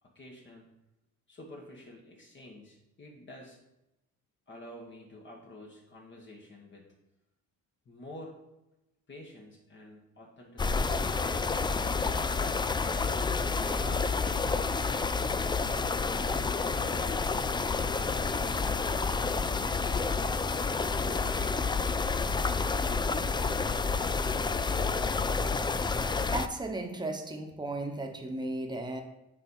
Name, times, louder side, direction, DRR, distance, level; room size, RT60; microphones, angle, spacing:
voice 1, 0.0-0.7 1.3-3.6 4.5-6.9 7.8-8.4 9.1-11.0 11.7-12.6 13.6-17.2 18.1-18.9 19.3-20.4, left 1 dB, 40° left, -1 dB, 1.5 m, -49 dB
sound 1, 10.6-26.5, left 4 dB, 15° left, 0.3 m, -29 dB
voice 2, 26.3-29.0, right 2 dB, 15° right, 3 dB, 1.1 m, -35 dB
7.4 x 4.1 x 5.5 m, 0.91 s
cardioid pair, 90°, 30 cm